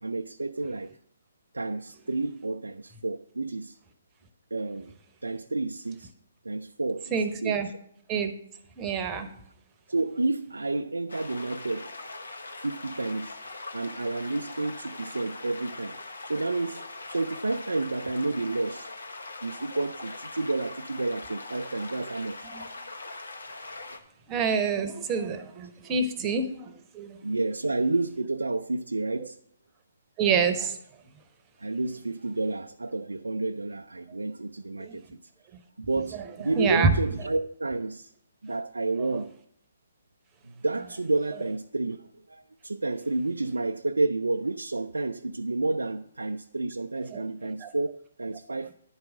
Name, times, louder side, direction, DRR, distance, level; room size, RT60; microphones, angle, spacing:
voice 1, 0.0-0.9 1.5-3.8 4.5-5.0 5.2-6.1 6.4-7.6 9.9-12.2 12.5-13.4 13.7-16.0 16.2-18.9 19.4-22.8 23.9-24.0 27.2-29.4 31.6-35.2 35.8-38.1 38.4-39.4 40.4-48.7, right 2 dB, 80° right, 0.3 m, -30 dB
voice 2, 7.1-7.7 8.1-8.3 8.8-9.3 22.5-22.6 24.3-27.2 30.2-30.8 34.8-35.0 36.6-36.9 47.1-47.2 47.6-47.7, right 5 dB, 20° right, 0.9 m, -27 dB
sound 1, 11.1-24.0, left 2 dB, 80° left, 1.0 m, -41 dB
10.5 x 4.7 x 6.3 m
figure-of-eight pair, 130°, 0 cm